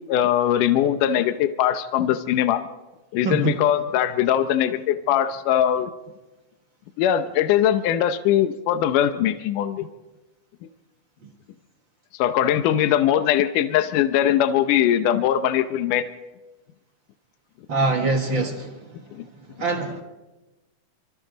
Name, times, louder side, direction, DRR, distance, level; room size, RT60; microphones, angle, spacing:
voice 1, 0.0-2.6 3.1-5.9 7.0-9.9 12.1-16.1 19.1-19.2, left 10 dB, 75° left, 9 dB, 2.3 m, -21 dB
voice 2, 3.2-3.6 17.7-18.9 19.6-20.0, right 3 dB, 45° right, 4 dB, 1.8 m, -24 dB
28.0 x 25.5 x 4.0 m, 1.1 s
omnidirectional pair, 3.8 m